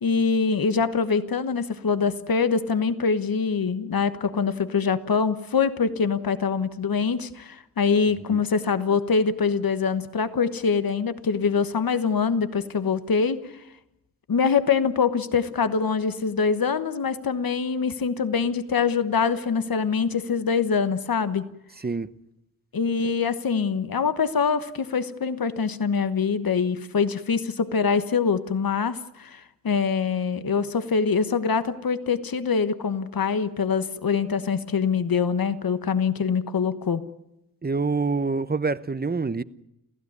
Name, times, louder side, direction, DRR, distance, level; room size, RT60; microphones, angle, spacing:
voice 1, 0.0-13.4 14.3-21.5 22.7-37.0, left 5 dB, 90° left, 1.3 m, -24 dB
voice 2, 21.8-22.1 37.6-39.4, right 4 dB, 30° right, 0.8 m, -26 dB
27.5 x 16.0 x 9.6 m
wide cardioid pair, 85°, 34 cm